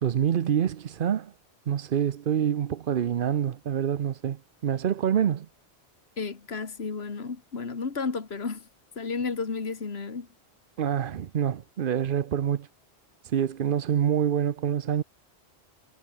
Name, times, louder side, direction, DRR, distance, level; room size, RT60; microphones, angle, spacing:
voice 1, 0.0-1.3 1.7-5.5 10.8-12.7 13.2-15.0, right 9 dB, 55° right, 0.8 m, -26 dB
voice 2, 6.2-8.7 9.0-10.3, left 4 dB, 70° left, 2.1 m, -32 dB
omnidirectional pair, 1.1 m